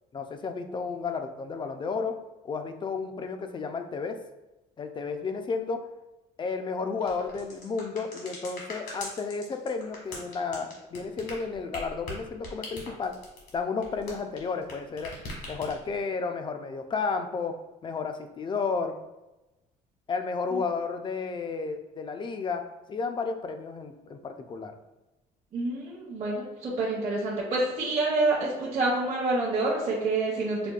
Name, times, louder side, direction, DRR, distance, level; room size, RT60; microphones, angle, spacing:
voice 1, 0.1-2.1 2.4-4.2 4.8-5.8 6.4-13.2 13.5-15.1 15.5-17.5 17.8-19.0 20.1-24.7, left 4 dB, 30° left, 7 dB, 0.4 m, -32 dB
sound 1, 7.0-14.7 15.0-16.0, left 2 dB, 75° left, 1.4 m, -41 dB
voice 2, 25.5-30.7, right 2 dB, 40° right, -5 dB, 0.8 m, -27 dB
5.1 x 2.2 x 2.3 m, 1.0 s
cardioid pair, 110°, 17 cm